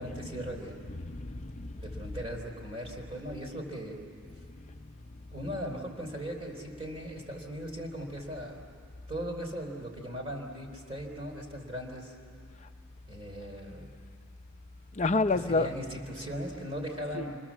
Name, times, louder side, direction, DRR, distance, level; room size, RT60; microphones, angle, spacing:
voice 1, 0.0-0.8 1.8-4.0 5.3-8.6 9.1-12.2 13.1-13.9 15.4-17.4, equal, 25° right, 3.7 m, -38 dB
voice 2, 0.9-2.0 15.0-15.7 17.1-17.3, left 3 dB, 30° left, 0.6 m, -30 dB
28.0 x 24.5 x 7.4 m
head